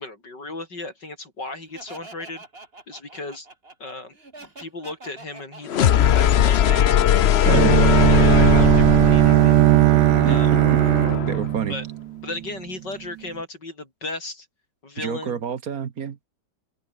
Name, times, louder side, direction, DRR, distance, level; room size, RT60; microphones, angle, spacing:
voice 1, 0.0-2.4 2.9-3.5 3.8-7.1 7.5-9.6 10.2-10.5 11.7-11.8 12.2-14.5 14.8-15.4, left 2 dB, 85° left, 7.1 m, -35 dB
Laughter, 1.7-7.4, right 2 dB, 35° right, 3.6 m, -45 dB
sound 1, 5.7-11.5, left 10 dB, 60° left, 0.7 m, -20 dB
voice 2, 7.5-7.8 10.2-10.4 11.3-11.8 15.0-16.2, right 7 dB, 60° right, 1.7 m, -28 dB
Bowed string instrument, 7.5-12.4, right 16 dB, 90° right, 1.2 m, -17 dB
open air
omnidirectional pair, 1.8 m